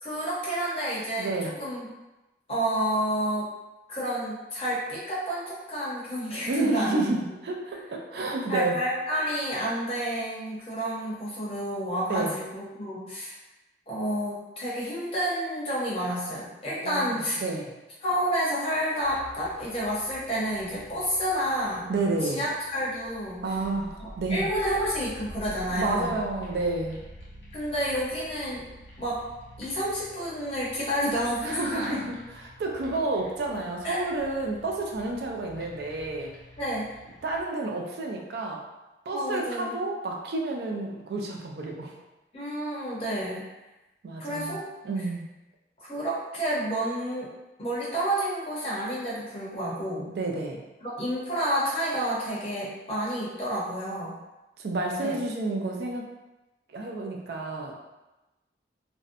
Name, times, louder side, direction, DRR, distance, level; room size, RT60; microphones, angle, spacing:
voice 1, 0.0-1.9 2.5-3.5 3.9-7.0 8.2-13.4 13.9-17.4 18.0-21.9 22.2-23.5 24.0-26.2 27.5-28.7 29.0-29.2 29.6-32.0 33.8-34.0 36.6-36.9 39.1-39.8 42.3-43.4 44.2-44.6 45.8-47.3 47.6-50.1 50.8-54.2 55.0-55.2, equal, 30° left, -7 dB, 0.7 m, -30 dB
voice 2, 1.2-1.6 6.5-8.8 12.1-12.3 16.8-17.7 21.9-22.4 23.4-24.5 25.7-27.0 31.4-36.3 37.2-38.6 39.1-41.9 44.0-44.6 44.8-45.3 50.1-50.6 54.6-56.1 56.7-57.7, right 2 dB, 60° right, 1 dB, 0.3 m, -30 dB
sound 1, 19.0-37.4, equal, 65° left, 0.6 m, -48 dB
2.5 x 2.0 x 2.5 m, 1.0 s
head